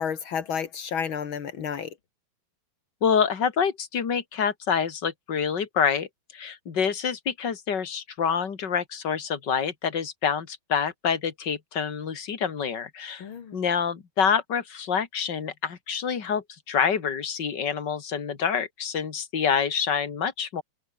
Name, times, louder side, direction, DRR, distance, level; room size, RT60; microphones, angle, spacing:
voice 1, 0.0-1.9 13.2-13.6, left 7 dB, 70° left, 1.2 m, -31 dB
voice 2, 3.0-13.3 13.5-20.6, left 7 dB, 35° left, 1.8 m, -27 dB
omnidirectional pair, 5.0 m